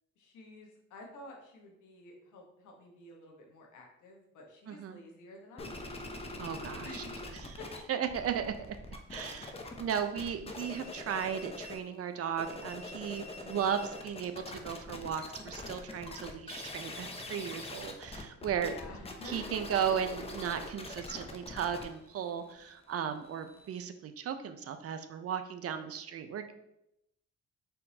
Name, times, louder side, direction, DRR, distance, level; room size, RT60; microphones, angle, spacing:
voice 1, 0.2-6.0 6.8-7.2 7.6-7.8 18.5-19.6, left 1 dB, 80° left, 0 dB, 1.1 m, -50 dB
voice 2, 4.7-5.0 6.4-7.0 7.4-7.6 7.9-8.5 9.1-18.7 19.2-26.6, right 8 dB, 50° right, 9 dB, 0.5 m, -36 dB
sound 1, 5.6-7.8 8.0-11.9 12.2-23.8, left 2 dB, 20° left, 0.6 m, -44 dB
4.3 x 3.8 x 2.7 m, 0.82 s
cardioid pair, 90°, 30 cm